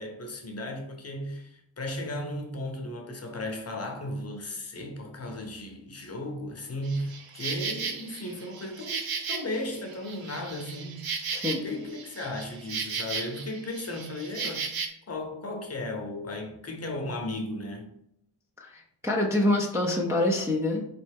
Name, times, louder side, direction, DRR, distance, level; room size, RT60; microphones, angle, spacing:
voice 1, 0.0-9.0 9.3-11.0 11.6-14.7 15.1-17.9, left 1 dB, 30° left, 0.8 m, -35 dB
Insect, 6.8-14.9, right 5 dB, 50° right, 0.7 m, -35 dB
voice 2, 11.3-11.7 18.6-20.8, left 1 dB, 5° right, 0.5 m, -26 dB
4.1 x 3.2 x 3.4 m
cardioid pair, 95°, 47 cm